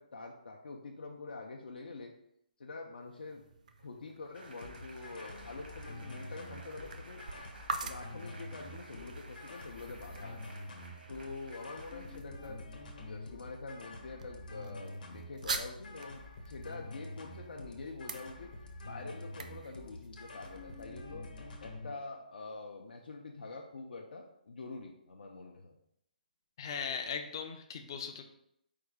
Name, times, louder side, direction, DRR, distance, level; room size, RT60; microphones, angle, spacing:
voice 1, 0.0-2.1 2.6-3.4 3.8-7.2 7.8-10.5 11.1-12.6 13.0-18.5 18.8-21.3 21.6-25.7, left 3 dB, 80° left, 1 dB, 0.6 m, -46 dB
sound 1, 3.0-20.8, right 4 dB, 50° right, 0.4 m, -47 dB
sound 2, 4.3-12.2, right 2 dB, 85° right, 1.0 m, -54 dB
sound 3, 4.6-21.9, left 2 dB, 60° left, 1.0 m, -47 dB
voice 2, 26.6-28.2, left 6 dB, 25° left, 6 dB, 0.4 m, -38 dB
4.7 x 2.3 x 4.7 m, 0.74 s
hypercardioid pair, 175°, 5 cm